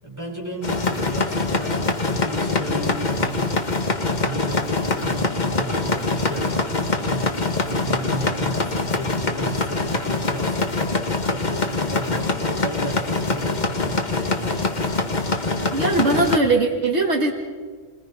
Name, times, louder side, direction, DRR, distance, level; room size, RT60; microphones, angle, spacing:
voice 1, 0.0-3.6 4.0-6.7 7.0-10.8 11.2-14.7, right 1 dB, 15° right, -3 dB, 6.9 m, -34 dB
sound 1, 0.6-16.4, left 3 dB, 40° left, 1.6 m, -24 dB
voice 2, 15.7-17.3, right 2 dB, 70° right, 1 dB, 2.1 m, -20 dB
29.5 x 22.0 x 5.4 m, 1.5 s
omnidirectional pair, 1.2 m